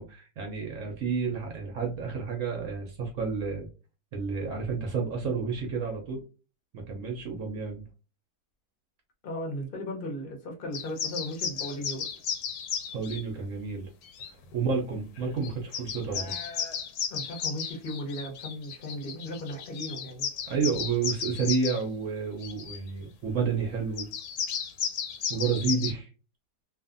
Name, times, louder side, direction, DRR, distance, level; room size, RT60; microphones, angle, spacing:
voice 1, 0.0-3.7 4.1-6.2 6.7-7.9 12.9-13.9 14.5-16.3 20.5-24.1 25.3-26.1, right 5 dB, 65° right, 1 dB, 0.8 m, -30 dB
voice 2, 9.2-12.1 17.1-20.3, left 1 dB, 50° left, 1 dB, 0.6 m, -36 dB
sound 1, 10.7-13.2 14.0-14.3 15.2-15.3 15.4-21.8 22.4-22.8 24.0-25.9, left 7 dB, 70° left, 1.0 m, -34 dB
2.6 x 2.5 x 2.4 m, 0.34 s
omnidirectional pair, 1.9 m